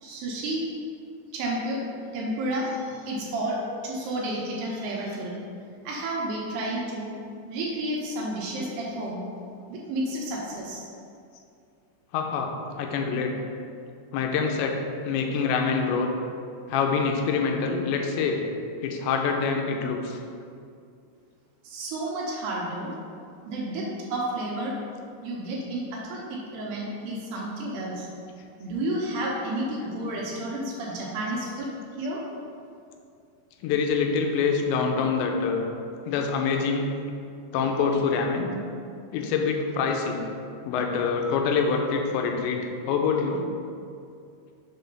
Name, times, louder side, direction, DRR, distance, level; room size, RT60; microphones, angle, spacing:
voice 1, 0.0-0.6 1.3-3.6 3.8-5.4 5.9-7.1 7.5-9.2 9.7-10.8 21.6-22.9 23.4-24.8 25.2-28.1 28.6-31.7 32.0-32.2, right 1 dB, 75° right, -4 dB, 2.7 m, -31 dB
voice 2, 12.1-12.5 12.8-13.4 14.1-14.8 15.0-16.1 16.7-18.4 18.8-20.2 33.6-35.7 36.1-36.9 37.5-38.5 39.1-40.2 40.6-43.5, left 5 dB, 85° left, 3 dB, 2.9 m, -25 dB
6.6 x 4.1 x 5.3 m, 2.4 s
omnidirectional pair, 5.1 m